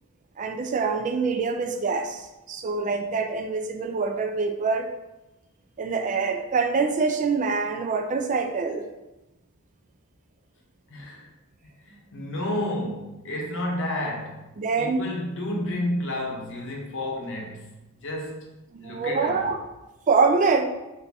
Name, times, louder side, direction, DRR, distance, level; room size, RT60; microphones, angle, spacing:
voice 1, 0.4-4.9 5.8-8.8 14.6-15.1 18.7-19.6 20.1-20.7, right 4 dB, 35° right, 5 dB, 0.3 m, -25 dB
voice 2, 10.9-11.3 11.6-14.5 14.8-17.7 18.0-19.5, left 1 dB, 60° left, -1 dB, 0.8 m, -31 dB
3.4 x 2.6 x 4.0 m, 0.98 s
head